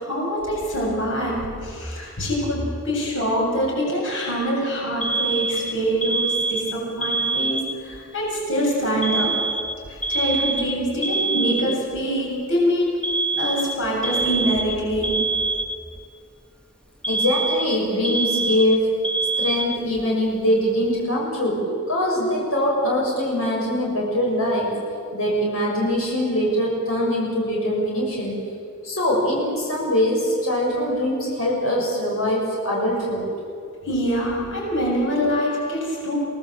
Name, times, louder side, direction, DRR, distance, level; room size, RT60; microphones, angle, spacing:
voice 1, 0.0-9.4 9.9-13.0 13.3-15.3 33.8-36.2, equal, 65° left, -2 dB, 7.3 m, -24 dB
Alarm, 5.0-8.0 9.0-12.0 13.0-16.0 17.0-20.0, right 3 dB, 5° left, 1.6 m, -25 dB
voice 2, 17.1-19.0 19.4-24.7 25.1-28.4 28.8-33.3, equal, 80° left, -3 dB, 7.0 m, -22 dB
29.0 x 19.0 x 8.0 m, 2.4 s
head